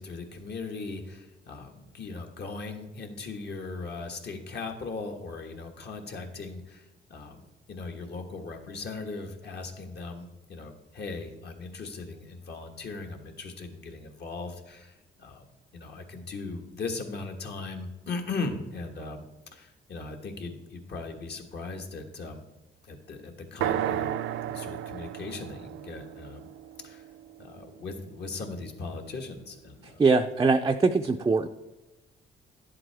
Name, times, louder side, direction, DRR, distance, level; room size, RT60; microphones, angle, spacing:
voice 1, 0.0-15.5 15.7-19.2 19.5-22.4 22.9-26.4 26.8-27.0 27.4-30.0, left 3 dB, 55° left, 4 dB, 1.4 m, -38 dB
sound 1, 23.6-27.5, right 11 dB, 85° right, 0.5 m, -33 dB
voice 2, 30.0-31.5, right 4 dB, 20° right, 5 dB, 0.4 m, -22 dB
10.5 x 7.6 x 3.4 m, 1.0 s
cardioid pair, 90°, 20 cm